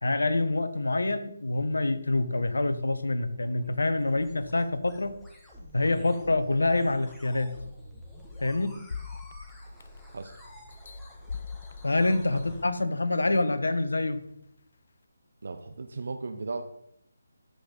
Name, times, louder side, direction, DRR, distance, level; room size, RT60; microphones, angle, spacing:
voice 1, 0.0-5.1 5.7-7.5 8.4-8.7 11.8-14.2, left 2 dB, 80° left, 12 dB, 1.0 m, -26 dB
sound 1, 3.0-12.7, left 1 dB, 5° left, 1.8 m, -49 dB
sound 2, 8.9-10.2 10.7-12.8 13.4-13.5, left 6 dB, 55° left, 0.5 m, -41 dB
voice 2, 15.4-16.6, right 3 dB, 65° right, 8 dB, 0.7 m, -36 dB
13.5 x 5.5 x 3.9 m, 0.76 s
figure-of-eight pair, 155°, 0 cm